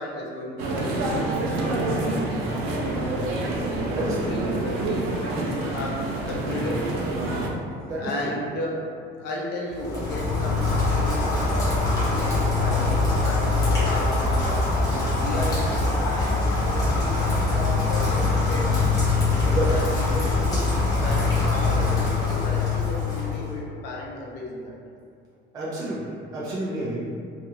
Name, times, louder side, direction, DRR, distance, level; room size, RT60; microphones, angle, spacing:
voice 1, 0.0-3.0 3.8-7.1 8.0-8.9 9.2-18.8 19.3-20.7 21.0-25.0, left 1 dB, 55° left, -3 dB, 0.5 m, -34 dB
sound 1, 0.6-7.5, right 2 dB, 85° right, 0.5 m, -27 dB
voice 2, 7.8-8.1 19.5-19.7 25.5-26.0 26.3-27.0, right 2 dB, 15° right, -8 dB, 0.3 m, -29 dB
Rain, 9.7-23.5, left 3 dB, 15° left, 0.7 m, -23 dB
2.9 x 2.3 x 2.6 m, 2.3 s
cardioid pair, 180°, 21 cm